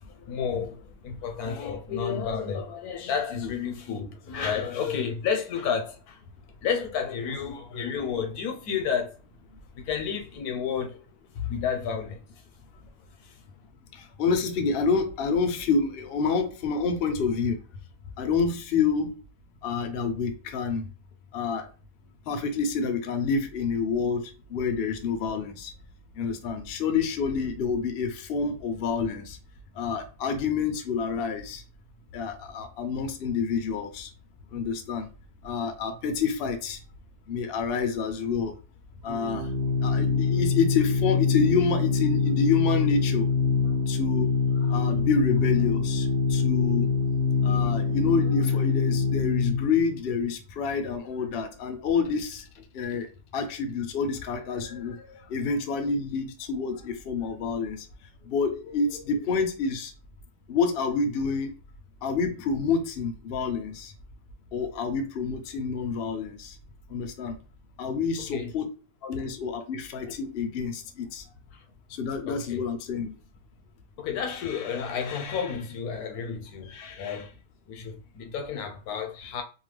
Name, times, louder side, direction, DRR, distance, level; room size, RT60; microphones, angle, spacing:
voice 1, 0.1-6.2 6.6-9.2 9.8-11.0 11.3-12.4 13.2-13.4 68.2-68.5 69.1-69.2 71.5-71.6 72.3-72.7 74.0-77.3 77.7-79.4, left 7 dB, 80° left, 1.1 m, -31 dB
voice 2, 13.9-17.6 18.2-19.2 19.6-20.9 21.3-21.7 22.3-25.7 26.2-29.4 29.8-31.6 32.1-34.1 34.5-35.1 35.4-36.8 37.3-38.5 39.0-39.5 39.8-43.3 43.9-44.3 44.6-46.9 47.4-52.4 52.7-53.1 53.3-57.9 58.3-59.9 60.5-61.5 62.0-63.9 64.5-66.5 66.9-67.4 67.8-68.7 69.0-71.2 71.9-73.1, left 5 dB, 65° left, 0.6 m, -28 dB
Organ, 39.1-49.8, left 5 dB, 70° right, 0.9 m, -24 dB
2.8 x 2.3 x 3.1 m
omnidirectional pair, 1.6 m